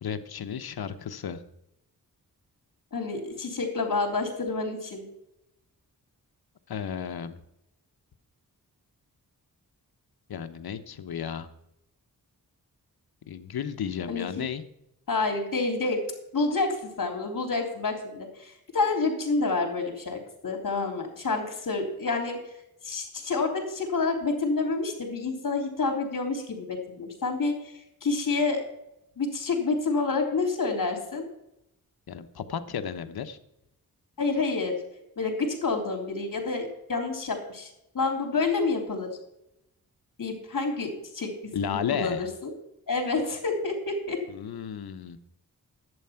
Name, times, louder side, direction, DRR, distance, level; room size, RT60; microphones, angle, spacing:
voice 1, 0.0-1.4 6.7-7.4 10.3-11.5 13.3-14.6 32.1-33.4 41.5-42.3 44.3-45.2, left 7 dB, 85° left, 10 dB, 1.0 m, -33 dB
voice 2, 2.9-5.0 14.1-14.4 15.1-16.0 16.3-22.5 22.8-28.6 29.2-31.3 34.2-34.8 35.2-39.2 40.2-41.3 41.6-42.5 42.9-44.2, left 3 dB, 60° left, 3 dB, 3.4 m, -28 dB
11.0 x 8.8 x 5.8 m, 0.84 s
wide cardioid pair, 85°, 36 cm